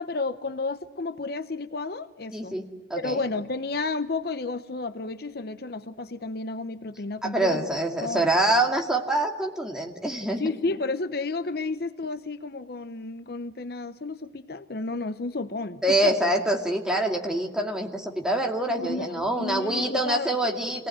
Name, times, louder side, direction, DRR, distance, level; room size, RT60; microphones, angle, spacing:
voice 1, 0.0-2.6 3.0-7.6 8.0-8.3 10.4-16.1 18.7-20.3, left 3 dB, 55° left, 12 dB, 0.8 m, -32 dB
voice 2, 2.3-3.2 7.2-10.5 15.8-20.9, right 1 dB, 5° right, 1 dB, 2.4 m, -25 dB
26.0 x 18.5 x 9.3 m, 1.3 s
head